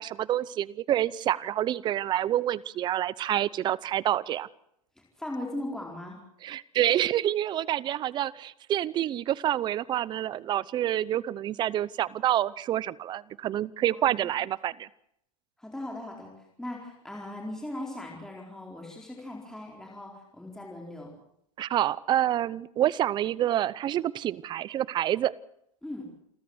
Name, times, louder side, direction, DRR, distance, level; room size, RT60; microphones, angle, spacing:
voice 1, 0.0-4.5 6.4-14.9 21.6-25.3, right 12 dB, 25° right, 21 dB, 0.7 m, -27 dB
voice 2, 5.2-6.2 13.9-14.3 15.6-21.1 25.8-26.0, left 1 dB, 5° left, -1 dB, 4.3 m, -39 dB
28.0 x 14.0 x 8.0 m, 0.74 s
supercardioid pair, 150°, 18 cm